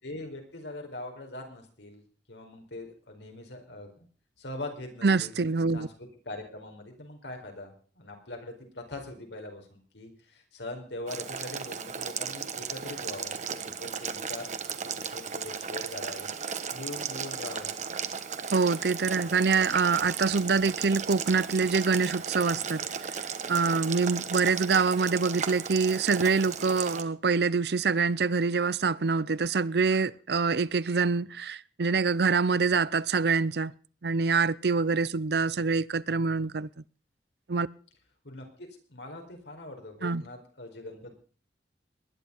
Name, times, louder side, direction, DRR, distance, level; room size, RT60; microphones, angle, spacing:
voice 1, 0.0-2.0 2.3-4.1 4.4-5.3 5.7-14.5 14.8-16.3 16.7-17.8 38.2-41.1, left 2 dB, 85° left, 4.7 m, -42 dB
voice 2, 5.0-5.9 18.5-22.8 23.5-33.7 34.0-36.7 37.5-37.7 40.0-40.2, right 4 dB, 65° right, 0.6 m, -25 dB
Boiling, 11.1-27.0, right 6 dB, 45° right, 1.3 m, -35 dB
19.5 x 11.0 x 5.4 m
head